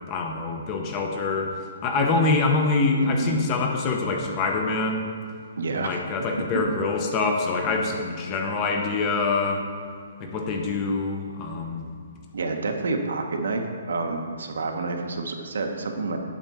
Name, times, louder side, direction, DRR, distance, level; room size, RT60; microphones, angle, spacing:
voice 1, 0.1-1.5 1.8-5.1 5.7-9.6 10.2-11.9, left 3 dB, 20° left, 2 dB, 0.7 m, -25 dB
voice 2, 3.0-3.4 5.6-6.0 12.3-16.2, right 3 dB, 75° right, 3 dB, 1.2 m, -29 dB
9.0 x 4.4 x 7.0 m, 2.2 s
hypercardioid pair, 175°, 0 cm